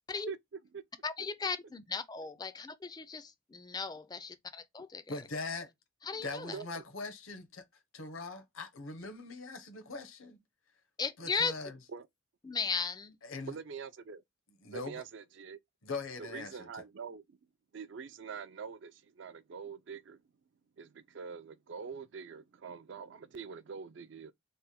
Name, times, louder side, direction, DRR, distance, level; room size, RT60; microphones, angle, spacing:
voice 1, 1.0-5.1 6.0-6.6 11.0-11.5 12.4-13.2, left 5 dB, 20° left, 0.4 m, -36 dB
voice 2, 5.1-5.7 6.2-7.6 7.9-10.4 11.2-11.8 13.2-13.5 14.6-15.0 15.8-16.7, left 3 dB, 80° left, 0.9 m, -41 dB
voice 3, 6.1-6.8 11.9-12.0 13.4-14.2 14.7-15.6 16.2-17.4 17.7-20.2 20.8-24.3, right 5 dB, 60° right, 0.4 m, -45 dB
3.3 x 2.1 x 4.2 m
head